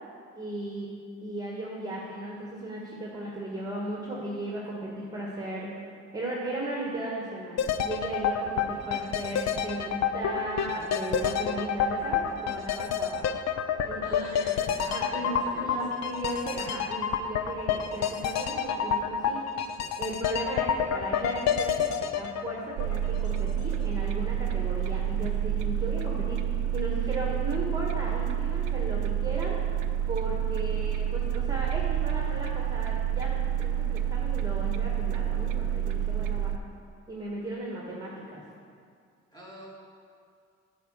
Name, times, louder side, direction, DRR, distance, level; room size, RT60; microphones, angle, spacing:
voice 1, 0.3-0.9 1.2-5.7 6.1-13.3 13.9-14.3 14.8-29.6 30.1-33.3 33.6-36.5 37.1-38.4, right 1 dB, 15° right, -4 dB, 1.5 m, -36 dB
sound 1, 7.6-23.5 23.8-23.9, left 7 dB, 60° left, 0.6 m, -29 dB
voice 2, 14.0-15.8 16.2-16.3 26.8-27.2 39.3-39.7, equal, 15° left, -5 dB, 2.5 m, -46 dB
sound 2, 22.8-36.6, right 10 dB, 90° right, 0.6 m, -29 dB
8.2 x 5.1 x 7.6 m, 2.2 s
cardioid pair, 90°, 30 cm